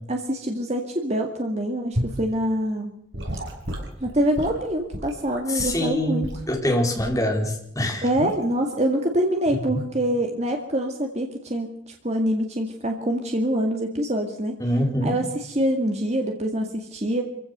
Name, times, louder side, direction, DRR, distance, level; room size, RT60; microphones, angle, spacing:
voice 1, 0.1-3.0 4.0-6.3 8.0-14.6 15.0-17.2, right 1 dB, 35° right, 3 dB, 2.0 m, -25 dB
Gurgling / Sink (filling or washing) / Liquid, 2.0-2.2 3.1-5.8 6.2-6.5 7.0-7.3 8.2-8.4, equal, 65° right, 5.6 m, -31 dB
voice 2, 5.5-8.1 9.5-9.9 14.6-15.1, left 1 dB, 15° left, 0 dB, 4.4 m, -25 dB
26.0 x 16.0 x 6.7 m, 0.79 s
head